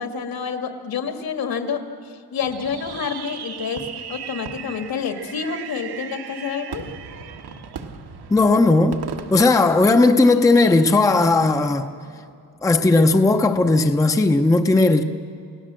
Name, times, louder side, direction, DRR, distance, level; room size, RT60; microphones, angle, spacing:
voice 1, 0.0-6.8, left 6 dB, 65° left, 2.0 m, -28 dB
Fireworks, 2.4-10.5, right 7 dB, 80° right, 1.5 m, -37 dB
voice 2, 8.3-9.0 9.3-11.9 12.6-15.0, left 2 dB, 10° left, 0.6 m, -16 dB
29.0 x 18.0 x 7.6 m
wide cardioid pair, 175°, 38 cm